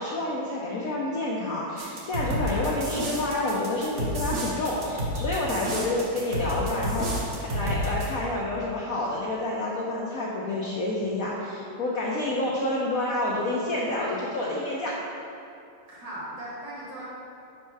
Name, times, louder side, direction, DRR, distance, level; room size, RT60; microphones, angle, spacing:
voice 1, 0.0-15.0, left 2 dB, 65° left, -5 dB, 0.9 m, -29 dB
sound 1, 1.8-8.1, equal, 45° right, 1.1 m, -30 dB
voice 2, 2.6-3.0 12.2-12.5 15.9-17.0, right 1 dB, 65° right, -7 dB, 2.5 m, -40 dB
5.6 x 5.4 x 4.6 m, 2.6 s
omnidirectional pair, 2.2 m